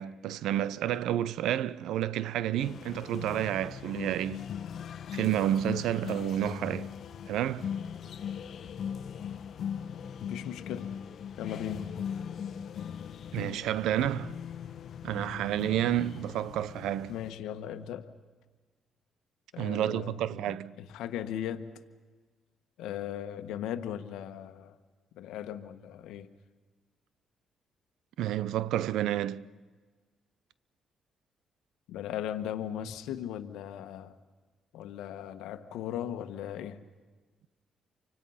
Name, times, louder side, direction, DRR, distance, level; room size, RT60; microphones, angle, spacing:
voice 1, 0.0-4.5 5.1-6.9 7.3-7.7 13.3-14.4 15.0-17.1 19.6-20.7 28.2-29.4, right 12 dB, 85° right, 0.7 m, -30 dB
sound 1, 2.6-17.3, left 8 dB, 60° left, 1.3 m, -39 dB
voice 2, 10.2-11.0 11.4-12.0 17.1-18.1 19.5-20.4 20.8-21.8 22.8-24.8 25.1-26.3 31.9-34.1 34.7-36.8, left 10 dB, 90° left, 1.3 m, -38 dB
30.0 x 25.0 x 5.7 m
cardioid pair, 90°, 0 cm